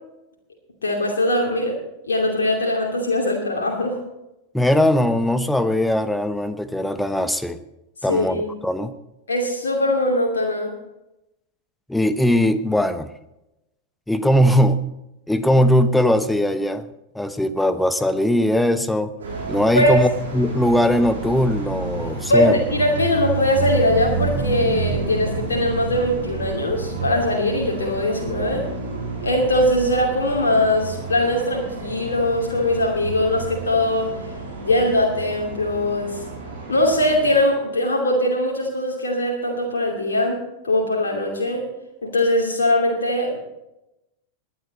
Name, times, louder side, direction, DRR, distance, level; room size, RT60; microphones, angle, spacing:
voice 1, 0.8-1.7 2.1-4.0 8.1-8.5 9.3-10.7 19.7-20.0 22.3-28.7 29.2-34.1 34.6-36.2 36.7-40.4 40.6-41.6 42.0-43.4, left 1 dB, 70° left, -1 dB, 2.7 m, -21 dB
voice 2, 4.5-7.6 8.0-8.9 11.9-13.1 14.1-14.9 15.3-16.9 17.1-19.1 19.5-22.6, left 1 dB, 5° left, 12 dB, 1.0 m, -20 dB
sound 1, 19.2-37.4, right 5 dB, 70° right, 6.5 m, -30 dB
20.5 x 10.0 x 4.2 m, 0.91 s
figure-of-eight pair, 90°, 0 cm